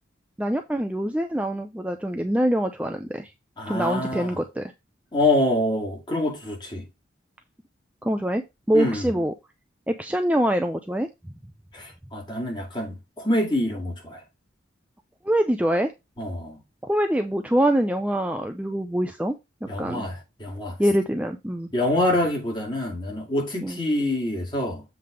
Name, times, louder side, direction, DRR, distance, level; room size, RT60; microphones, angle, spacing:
voice 1, 0.4-3.3 3.7-4.7 8.0-8.4 8.7-9.3 9.9-11.1 15.2-15.9 16.8-19.3 19.8-20.0 20.8-21.7 23.6-23.8, right 1 dB, 5° right, 0.5 m, -24 dB
voice 2, 3.6-4.4 5.1-6.9 8.7-9.2 11.7-14.2 16.2-16.6 19.7-20.8 21.7-24.8, left 1 dB, 25° left, 2.3 m, -26 dB
7.7 x 3.4 x 5.1 m
head